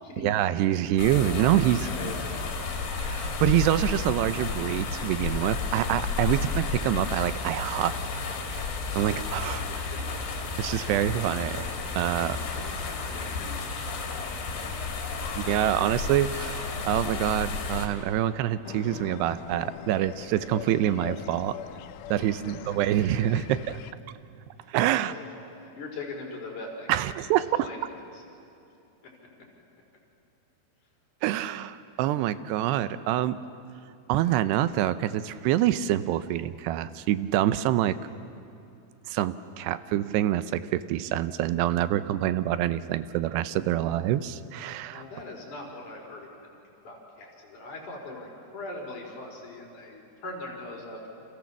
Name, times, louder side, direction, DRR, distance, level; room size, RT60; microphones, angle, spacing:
voice 1, 0.2-1.9 3.0-7.9 8.5-8.7 9.0-9.6 10.6-11.7 12.0-12.4 15.4-21.6 22.1-23.8 24.7-25.1 26.9-27.7 31.2-33.4 34.1-38.0 39.1-45.0, right 12 dB, 90° right, 13 dB, 2.9 m, -26 dB
sound 1, 1.0-17.9, left 4 dB, 70° left, 4.7 m, -32 dB
voice 2, 1.8-2.7 6.3-6.5 12.2-12.7 13.1-13.7 24.6-27.2 27.5-28.2 29.0-29.1 44.9-46.5 46.8-51.1, left 2 dB, 50° left, -2 dB, 6.1 m, -41 dB
sound 2, 18.6-23.9, left 12 dB, 90° left, 3.0 m, -42 dB
30.0 x 27.5 x 7.3 m, 2.8 s
omnidirectional pair, 4.8 m